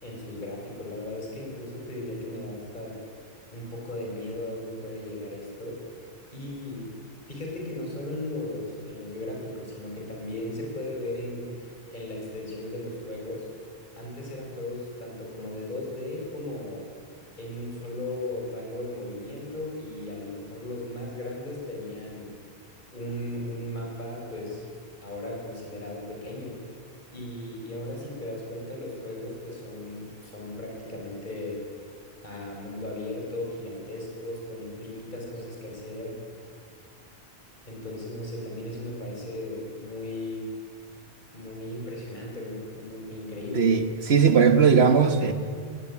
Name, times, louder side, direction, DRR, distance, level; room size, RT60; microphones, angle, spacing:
voice 1, 0.0-3.0 3.5-5.8 6.3-6.9 7.3-13.5 13.9-16.9 17.4-22.3 22.9-24.7 25.0-26.6 27.1-31.6 32.2-36.2 37.7-40.4 41.3-43.7, left 1 dB, 45° left, -1 dB, 5.1 m, -36 dB
voice 2, 44.1-45.3, right 6 dB, 75° right, 9 dB, 1.5 m, -18 dB
19.0 x 17.0 x 9.7 m, 2.3 s
omnidirectional pair, 1.1 m